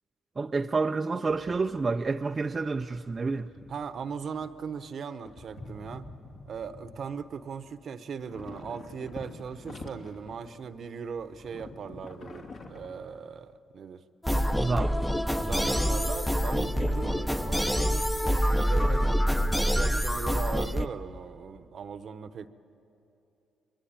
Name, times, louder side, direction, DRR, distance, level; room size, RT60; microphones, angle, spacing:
voice 1, 0.4-3.5 14.6-14.9, right 4 dB, 30° right, 0.5 m, -29 dB
sound 1, 1.3-2.1 2.4-4.9 5.2-7.8 8.1-10.7 11.0-13.5, left 2 dB, 55° left, 2.9 m, -47 dB
voice 2, 3.7-6.1 6.5-14.0 15.3-22.5, right 6 dB, 55° right, 1.0 m, -39 dB
sound 2, 14.2-20.9, equal, 5° left, 0.8 m, -26 dB
23.5 x 22.5 x 8.8 m
cardioid pair, 90°, 0 cm